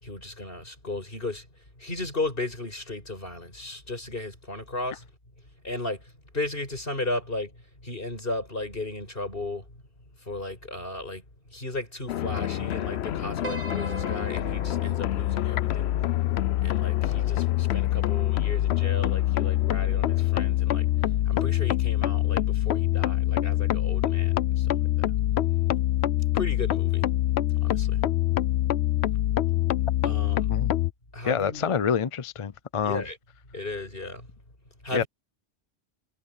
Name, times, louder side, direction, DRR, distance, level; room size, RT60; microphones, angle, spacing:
voice 1, 0.0-1.5 1.8-5.0 5.6-6.0 6.3-7.5 7.8-9.6 10.3-11.2 11.5-15.9 16.6-20.8 21.3-25.1 26.3-27.1 27.6-28.0 30.0-30.5 31.1-31.7 32.8-33.2 33.5-34.3 34.8-35.1, left 2 dB, 60° left, 5.9 m, -35 dB
sound 1, 12.1-30.9, left 13 dB, 80° left, 0.9 m, -25 dB
Piano, 13.4-17.8, right 4 dB, 55° right, 1.6 m, -43 dB
voice 2, 31.3-33.0 34.9-35.0, left 7 dB, 40° left, 0.5 m, -27 dB
omnidirectional pair, 1.1 m